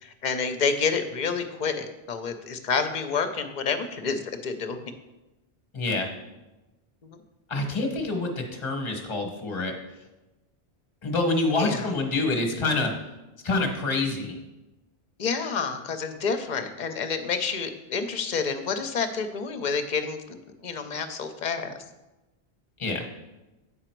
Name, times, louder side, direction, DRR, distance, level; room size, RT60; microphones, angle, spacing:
voice 1, 0.0-4.8 7.0-7.2 11.6-11.9 15.2-21.7, left 5 dB, 50° left, 8 dB, 0.7 m, -29 dB
voice 2, 5.7-6.1 7.5-9.7 11.0-12.9 13.4-14.4 22.8-23.1, left 2 dB, 30° left, 3 dB, 1.0 m, -26 dB
8.4 x 5.0 x 4.5 m, 1.1 s
omnidirectional pair, 1.1 m